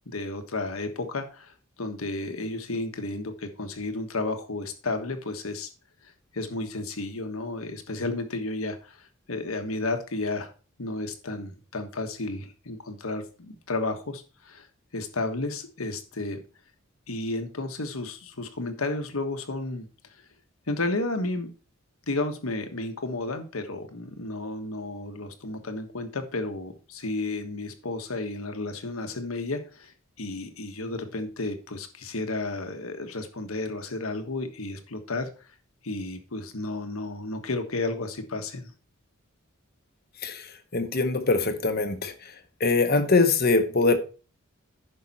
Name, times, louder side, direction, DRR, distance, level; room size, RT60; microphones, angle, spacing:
voice 1, 0.1-5.7 6.0-10.5 10.8-14.7 14.9-16.4 17.1-19.9 20.7-21.5 22.1-35.3 35.8-38.7, left 2 dB, 85° left, 1.4 m, -32 dB
voice 2, 40.7-42.1 42.6-44.0, left 3 dB, 50° left, 1.0 m, -22 dB
10.5 x 5.9 x 4.2 m
head